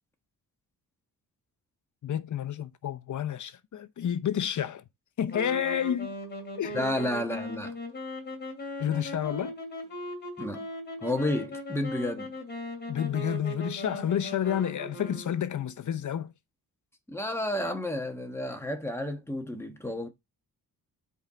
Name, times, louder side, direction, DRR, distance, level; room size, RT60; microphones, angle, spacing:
voice 1, 2.0-4.8 5.2-6.1 6.6-6.8 8.8-9.5 12.9-16.3, left 9 dB, 50° left, 0.8 m, -30 dB
sound 1, 5.3-15.7, equal, 30° left, 2.5 m, -39 dB
voice 2, 6.7-7.7 10.4-10.7 11.0-12.3 17.1-20.1, left 1 dB, 5° left, 1.2 m, -31 dB
8.0 x 4.7 x 3.9 m
wide cardioid pair, 130°, 37 cm